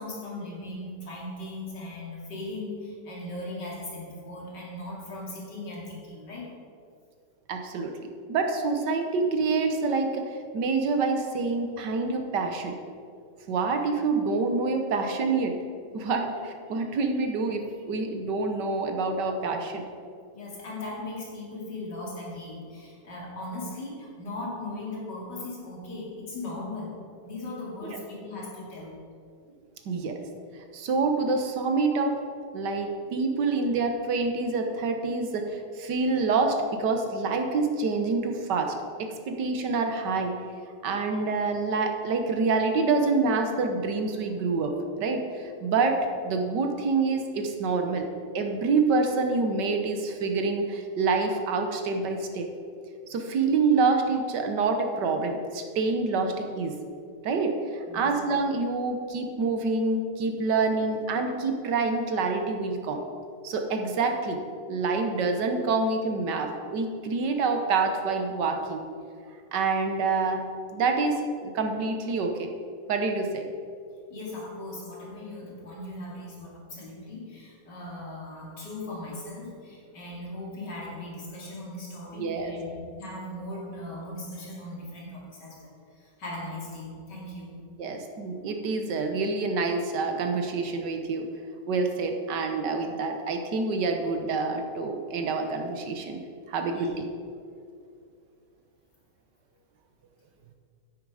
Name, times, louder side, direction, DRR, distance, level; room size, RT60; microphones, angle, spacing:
voice 1, 0.0-6.5 16.2-16.3 20.3-26.9 27.2-29.0 57.9-58.1 74.1-87.5 96.7-96.9, left 2 dB, 85° left, -5 dB, 3.2 m, -38 dB
voice 2, 7.5-7.9 8.3-12.8 13.5-15.6 15.9-16.2 16.7-19.8 27.8-28.0 29.8-30.2 30.7-32.2 32.5-38.7 39.0-40.4 40.8-46.0 46.2-48.1 48.3-52.5 53.1-56.8 57.2-63.0 63.4-64.4 64.7-68.8 69.5-70.5 70.7-72.5 72.9-73.5 82.1-82.5 87.8-91.3 91.7-96.2 96.5-96.9, right 4 dB, 80° right, 5 dB, 1.7 m, -27 dB
9.7 x 9.1 x 4.9 m, 2.3 s
omnidirectional pair, 1.8 m